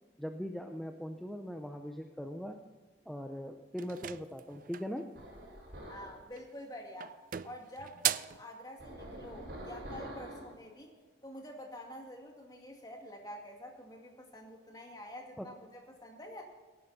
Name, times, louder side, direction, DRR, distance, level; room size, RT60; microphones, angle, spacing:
voice 1, 0.2-2.6 3.1-5.1 15.4-15.5, equal, ahead, 4 dB, 0.6 m, -40 dB
sound 1, 3.8-5.0 6.3-6.7 7.0-8.4, right 11 dB, 45° right, 0.4 m, -37 dB
sound 2, 5.1-6.2 8.8-10.5, right 1 dB, 60° right, 4.9 m, -45 dB
voice 2, 5.9-7.2 7.4-10.9 11.2-16.4, left 1 dB, 20° left, 1 dB, 2.2 m, -48 dB
18.0 x 11.0 x 4.2 m, 1.4 s
head